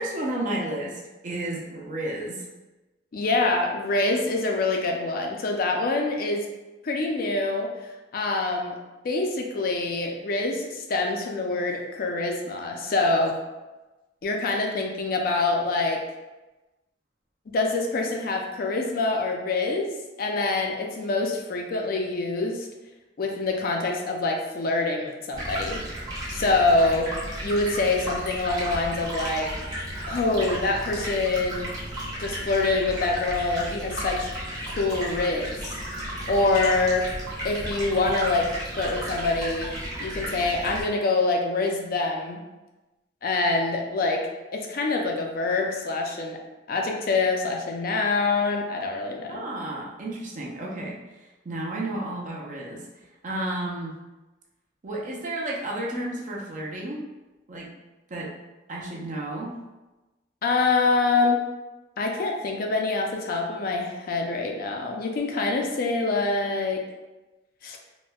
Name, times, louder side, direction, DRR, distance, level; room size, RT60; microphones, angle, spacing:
voice 1, 0.0-2.4 49.3-51.0 51.4-52.9 53.2-54.0 54.8-57.1 57.5-57.7 58.1-58.3 58.7-59.6, right 1 dB, 45° right, -3 dB, 0.6 m, -32 dB
voice 2, 3.1-6.4 6.8-8.8 9.0-13.4 14.2-16.0 17.5-19.9 20.2-22.7 23.2-25.8 26.3-27.1 27.4-29.5 30.1-31.7 32.2-34.3 34.7-35.6 36.3-37.1 37.4-38.5 38.8-39.7 40.0-42.4 43.2-44.3 44.5-46.4 46.7-49.4 60.4-61.5 62.0-66.8 67.6-67.8, left 3 dB, 50° left, 1 dB, 0.4 m, -25 dB
Stream, 25.3-40.8, right 1 dB, 20° right, 0.9 m, -34 dB
4.1 x 2.1 x 2.3 m, 1.1 s
head